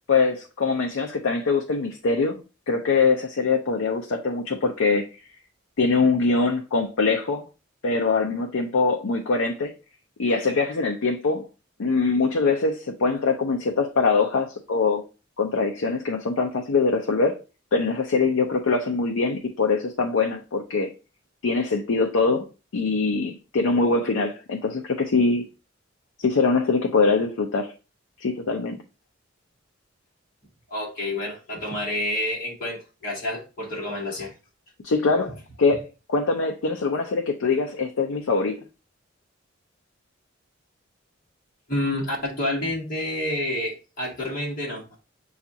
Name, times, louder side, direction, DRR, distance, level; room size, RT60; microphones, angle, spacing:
voice 1, 0.1-2.4 2.7-5.0 5.8-7.5 7.8-9.7 10.2-11.5 11.8-15.0 15.4-17.4 17.7-20.9 21.4-22.5 22.7-25.4 26.2-27.7 28.2-28.8 34.8-35.8 36.1-38.6, left 4 dB, 85° left, 0.5 m, -23 dB
voice 2, 30.7-34.3 41.7-45.0, left 1 dB, 45° left, 1.4 m, -29 dB
7.0 x 2.4 x 2.7 m
head